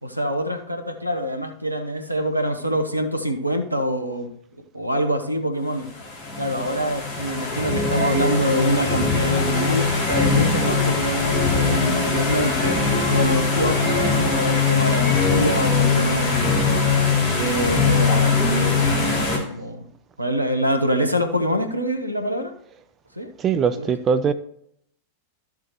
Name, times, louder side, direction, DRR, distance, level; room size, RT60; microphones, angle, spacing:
voice 1, 0.0-4.3 4.7-5.9 6.4-16.5 17.3-19.2 19.5-19.9 20.2-22.5 23.2-23.3 23.7-23.9, equal, 85° right, 1.0 m, -25 dB
sound 1, 5.9-19.4, left 4 dB, 30° left, 2.9 m, -21 dB
voice 2, 23.4-24.3, right 6 dB, 25° right, 0.4 m, -21 dB
13.0 x 7.2 x 3.1 m
figure-of-eight pair, 90°, 0 cm